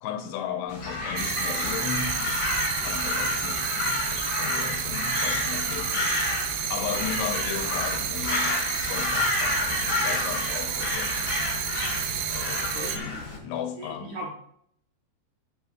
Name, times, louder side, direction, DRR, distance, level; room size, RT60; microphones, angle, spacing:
voice 1, 0.0-2.4 2.8-11.5 12.3-14.2, left 8 dB, 80° left, 2.8 m, -36 dB
Crow, 0.7-13.4, left 2 dB, 40° left, 2.9 m, -30 dB
sound 1, 1.2-13.0, right 10 dB, 85° right, 2.9 m, -31 dB
voice 2, 12.4-13.5 13.8-14.3, right 2 dB, 70° right, 1.9 m, -40 dB
12.5 x 8.3 x 2.4 m
omnidirectional pair, 5.0 m